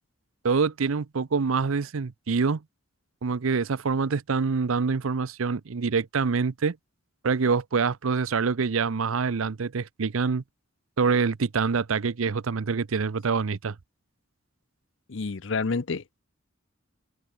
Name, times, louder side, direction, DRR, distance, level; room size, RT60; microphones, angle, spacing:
voice 1, 0.4-2.6 3.2-6.8 7.2-10.4 11.0-13.7, right 5 dB, 80° right, 0.6 m, -25 dB
voice 2, 15.1-16.2, left 4 dB, 60° left, 0.7 m, -29 dB
head